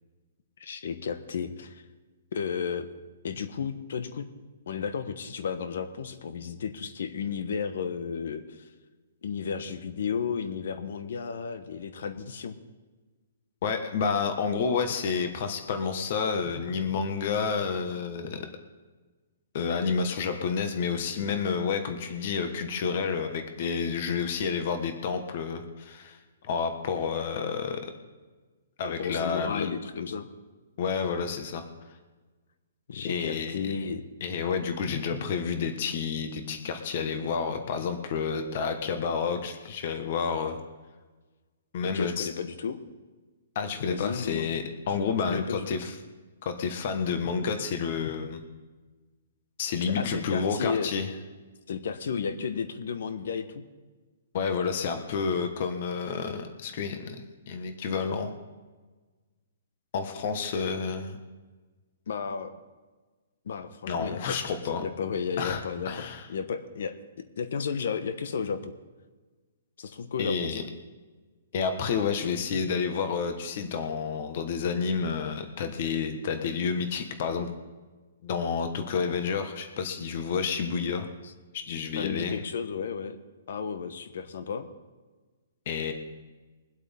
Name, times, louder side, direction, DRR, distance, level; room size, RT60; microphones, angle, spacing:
voice 1, 0.6-1.8 2.3-2.9 3.2-4.3 4.7-8.7 9.2-12.6 28.8-30.3 32.9-34.0 41.9-42.8 43.9-44.5 44.9-45.0 45.3-45.7 50.0-50.9 51.7-53.6 62.1-62.5 63.4-64.5 64.8-67.0 67.4-68.7 69.8-70.6 81.2-81.3 82.0-83.2 83.5-84.7, left 6 dB, 65° left, 10 dB, 1.2 m, -33 dB
voice 2, 13.6-18.5 19.5-26.2 26.4-27.8 28.8-29.7 30.8-31.6 33.0-33.7 34.2-40.6 41.7-42.3 43.5-45.9 46.4-48.4 49.6-51.1 54.3-58.3 59.9-61.2 63.9-64.8 65.4-65.6 65.8-66.2 70.2-70.6 71.5-77.5 78.2-81.1 81.5-82.4 85.6-85.9, left 5 dB, 45° left, 7 dB, 1.4 m, -30 dB
23.0 x 8.2 x 3.6 m, 1.3 s
hypercardioid pair, 160°, 0 cm